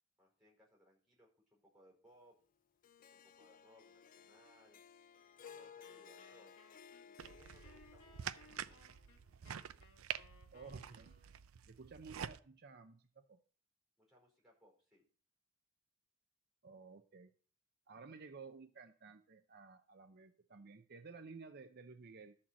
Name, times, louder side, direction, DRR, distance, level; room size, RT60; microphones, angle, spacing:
voice 1, 0.2-2.4 3.1-4.8 5.5-6.6 7.0-8.8 14.0-15.0, equal, ahead, -2 dB, 4.7 m, -67 dB
Harp, 2.8-9.2, left 7 dB, 40° left, 0.4 m, -59 dB
Wind instrument woodwind instrument, 5.4-11.4, left 3 dB, 90° left, 1.9 m, -65 dB
sound 1, 7.2-12.4, right 8 dB, 85° right, 0.5 m, -47 dB
voice 2, 10.5-11.1 11.7-13.4 16.6-17.3 17.9-22.4, right 4 dB, 50° right, 7 dB, 0.7 m, -54 dB
12.5 x 4.4 x 7.5 m, 0.42 s
head